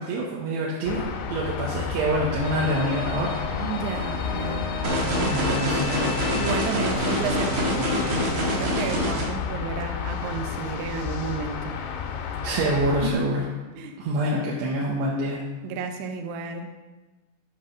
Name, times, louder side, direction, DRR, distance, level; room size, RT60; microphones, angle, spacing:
voice 1, 0.0-3.4 5.2-6.0 12.4-13.4 14.0-15.4, right 1 dB, 75° right, -4 dB, 2.7 m, -26 dB
sound 1, 0.9-13.1, left 6 dB, 85° left, 3.6 m, -31 dB
sound 2, 2.4-8.2, left 3 dB, 70° left, 1.6 m, -34 dB
voice 2, 3.6-5.7 6.1-11.8 13.0-13.3 13.8-14.0 15.6-16.7, right 5 dB, 90° right, 5 dB, 2.3 m, -32 dB
sound 3, 4.8-9.2, equal, 50° right, 2.0 m, -26 dB
11.0 x 4.9 x 6.0 m, 1.2 s
omnidirectional pair, 6.0 m